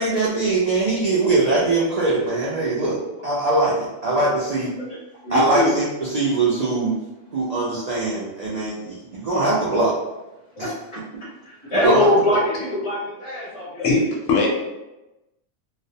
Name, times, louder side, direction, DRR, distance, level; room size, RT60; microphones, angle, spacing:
voice 1, 0.0-4.7 5.3-6.9 7.3-10.0 10.6-10.7 11.7-12.1, right 2 dB, 80° right, -7 dB, 0.3 m, -22 dB
voice 2, 5.2-5.7 10.6-10.7 11.4-13.8 14.3-14.4, left 1 dB, 25° left, -7 dB, 0.8 m, -22 dB
voice 3, 13.8-14.5, left 3 dB, 70° left, -2 dB, 0.9 m, -20 dB
2.3 x 2.1 x 2.7 m, 0.99 s
omnidirectional pair, 1.4 m